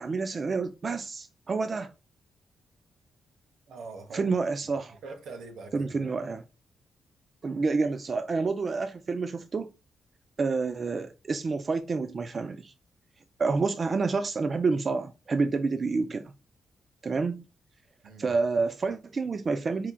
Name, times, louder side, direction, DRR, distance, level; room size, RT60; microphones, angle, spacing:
voice 1, 0.0-1.9 4.1-5.0 5.7-6.4 7.4-9.7 10.4-12.7 13.4-16.3 17.0-17.4 18.2-19.9, right 4 dB, 40° right, 0.3 m, -28 dB
voice 2, 3.7-4.3 4.6-4.7 5.0-5.9 18.0-18.4, right 3 dB, 80° right, 0.9 m, -43 dB
4.4 x 3.6 x 2.2 m
cardioid pair, 100°, 0 cm